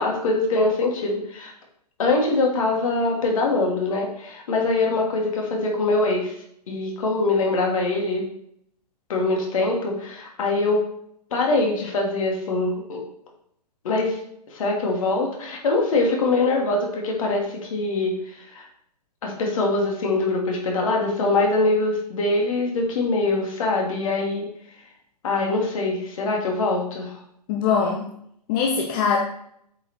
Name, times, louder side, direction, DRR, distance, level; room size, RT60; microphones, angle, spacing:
voice 1, 0.0-1.5 2.0-6.3 6.7-8.2 9.1-10.8 11.3-13.0 13.8-14.2 14.5-18.7 19.2-24.5 25.2-27.2, left 2 dB, 55° left, 0 dB, 2.7 m, -23 dB
voice 2, 27.5-28.1 28.5-29.2, left 6 dB, 30° left, 0 dB, 1.0 m, -22 dB
8.1 x 5.2 x 4.4 m, 0.71 s
figure-of-eight pair, 130°, 21 cm